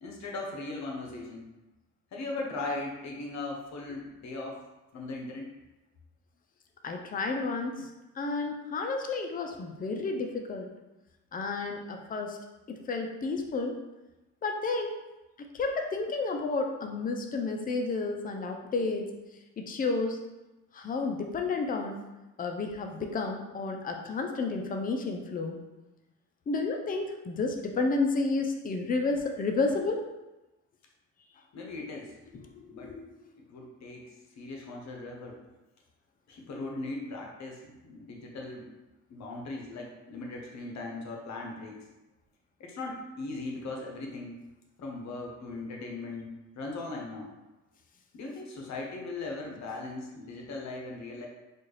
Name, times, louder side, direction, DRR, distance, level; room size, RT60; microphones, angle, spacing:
voice 1, 0.0-1.5 2.1-4.6 4.9-5.5 31.5-32.1 32.7-32.9 33.5-35.4 36.3-38.7 39.1-41.9 42.6-44.4 44.8-46.3 46.5-47.3 48.1-51.3, left 2 dB, 65° left, 0 dB, 0.9 m, -38 dB
voice 2, 6.8-10.7 11.3-12.4 12.7-13.8 14.4-15.0 15.5-19.1 19.6-20.2 20.7-22.0 22.4-25.6 26.5-30.1 32.3-33.0, left 3 dB, 30° left, 3 dB, 0.5 m, -31 dB
4.3 x 2.3 x 3.2 m, 1.0 s
cardioid pair, 90°, 30 cm